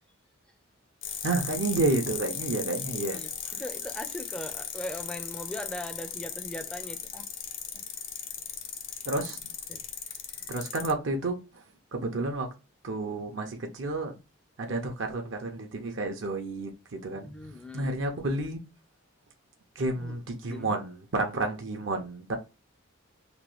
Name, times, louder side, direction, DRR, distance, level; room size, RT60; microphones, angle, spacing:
sound 1, 1.0-10.9, left 8 dB, 70° left, 0.6 m, -37 dB
voice 1, 1.2-3.2 9.1-9.4 10.5-11.6 11.9-12.5 12.8-14.2 14.6-17.3 17.7-18.6 19.8-22.4, right 2 dB, 70° right, 0.6 m, -30 dB
voice 2, 2.7-7.4 7.7-7.8 9.7-9.8 10.4-10.5 17.1-17.9 20.0-20.2 20.5-20.8, left 1 dB, 5° left, 0.3 m, -40 dB
3.0 x 2.2 x 3.1 m
head